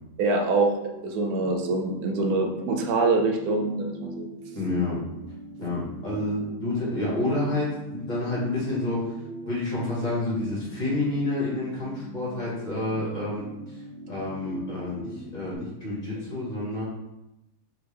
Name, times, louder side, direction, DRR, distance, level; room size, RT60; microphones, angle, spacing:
voice 1, 0.2-4.3, right 3 dB, 65° right, 2 dB, 1.1 m, -25 dB
sound 1, 0.7-15.6, right 2 dB, 85° right, 1.6 m, -42 dB
voice 2, 4.5-5.0 5.6-9.2 9.5-13.5 14.1-16.8, left 2 dB, 25° left, -6 dB, 1.6 m, -29 dB
3.8 x 3.6 x 3.2 m, 0.91 s
omnidirectional pair, 1.9 m